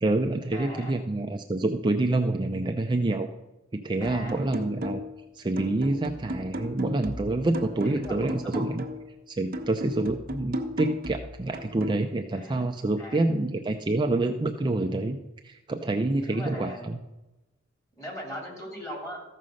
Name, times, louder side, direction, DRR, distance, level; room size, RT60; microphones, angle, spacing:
voice 1, 0.0-3.3 3.7-5.0 5.3-8.8 9.3-15.2 15.4-17.0, right 2 dB, 25° right, 4 dB, 0.5 m, -27 dB
voice 2, 0.5-1.0 4.0-4.4 7.8-8.6 12.3-12.7 13.0-13.3 16.2-16.8 18.0-19.2, equal, 15° left, -2 dB, 3.4 m, -39 dB
sound 1, 4.0-5.2 5.6-9.1 9.5-12.0, equal, 45° right, 1.1 m, -35 dB
14.0 x 5.5 x 6.3 m, 1.0 s
head